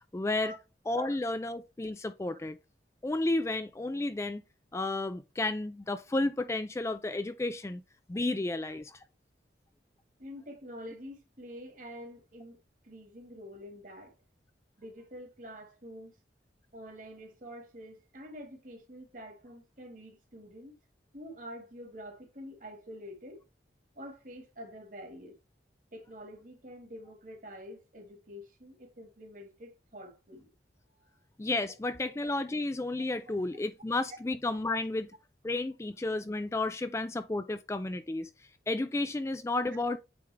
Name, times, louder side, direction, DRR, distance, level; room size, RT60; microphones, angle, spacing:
voice 1, 0.1-0.5 0.9-2.6 3.0-4.4 4.7-7.8 8.1-9.0 31.4-35.1 35.4-38.3 38.7-40.0, left 2 dB, 15° left, 0.3 m, -32 dB
voice 2, 10.2-14.1 14.8-16.2 16.7-20.8 21.1-23.4 24.0-25.4 25.9-30.5, equal, 45° right, 1.8 m, -47 dB
8.6 x 3.6 x 3.4 m
head